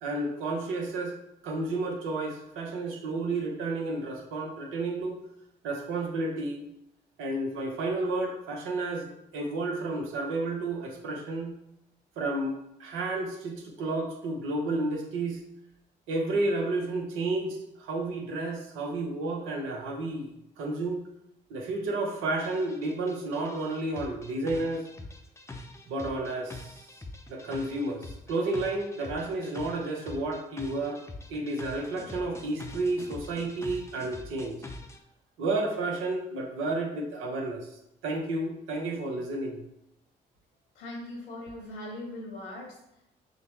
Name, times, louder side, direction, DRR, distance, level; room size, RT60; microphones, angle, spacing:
voice 1, 0.0-1.2 1.4-5.2 5.6-6.6 7.2-11.5 12.2-15.4 16.1-21.0 21.5-24.9 25.9-26.9 27.3-31.0 31.3-34.6 35.4-37.8 38.0-39.6, right 2 dB, 75° right, 1 dB, 0.8 m, -31 dB
sound 1, 22.4-35.0, left 2 dB, 15° left, 0.6 m, -44 dB
voice 2, 40.7-43.0, left 1 dB, 80° left, -1 dB, 1.3 m, -40 dB
6.2 x 2.1 x 3.1 m, 0.81 s
hypercardioid pair, 45°, 21 cm